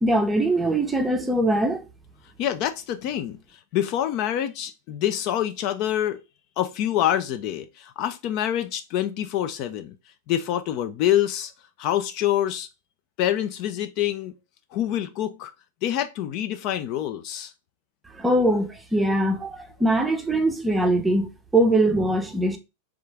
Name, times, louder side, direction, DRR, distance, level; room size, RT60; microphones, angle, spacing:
voice 1, 0.0-1.8 18.2-22.6, right 1 dB, 10° right, 0.6 m, -22 dB
voice 2, 2.4-3.4 3.7-6.2 6.6-9.9 10.3-11.5 11.8-12.7 13.2-14.3 14.7-15.5 15.8-17.5, left 11 dB, 40° left, 0.4 m, -26 dB
3.7 x 2.4 x 3.3 m
figure-of-eight pair, 90°, 0 cm